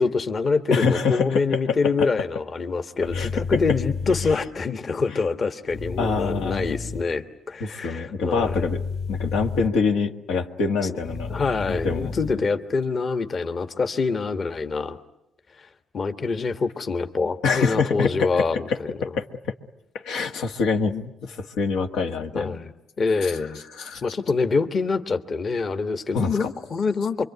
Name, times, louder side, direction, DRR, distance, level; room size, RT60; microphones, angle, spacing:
voice 1, 0.0-8.7 10.8-11.0 11.3-15.0 15.6-15.7 15.9-18.6 22.3-22.7 23.0-23.6 24.0-27.2, left 4 dB, 45° left, 8 dB, 1.5 m, -25 dB
voice 2, 0.7-1.6 2.0-2.1 3.1-3.4 4.2-4.4 6.0-6.7 7.6-8.8 9.1-11.4 11.7-12.1 17.4-18.8 19.1-19.2 19.9-22.6 23.8-24.0 26.1-26.5, left 4 dB, 90° left, 4 dB, 1.7 m, -25 dB
sound 1, 3.0-4.3 5.7-7.0 8.4-9.7 11.0-12.3, left 4 dB, 65° left, 1.8 m, -31 dB
25.5 x 24.0 x 9.5 m, 0.83 s
cardioid pair, 90°, 0 cm